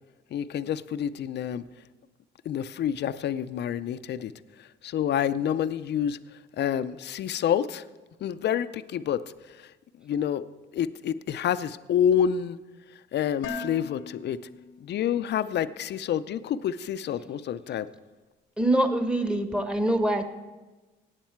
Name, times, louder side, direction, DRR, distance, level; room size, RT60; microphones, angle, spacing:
voice 1, 0.3-1.6 2.5-4.3 4.8-6.2 6.6-7.8 8.2-9.2 9.6-9.7 10.0-10.4 10.7-12.6 13.1-14.4 14.8-17.9, left 9 dB, 60° left, 14 dB, 0.5 m, -28 dB
Dishes pots and pans, 13.4-15.5, left 4 dB, 90° left, 1.0 m, -40 dB
voice 2, 18.6-20.3, right 1 dB, 5° right, 7 dB, 1.2 m, -24 dB
17.5 x 8.2 x 4.5 m, 1.2 s
cardioid pair, 90°, 20 cm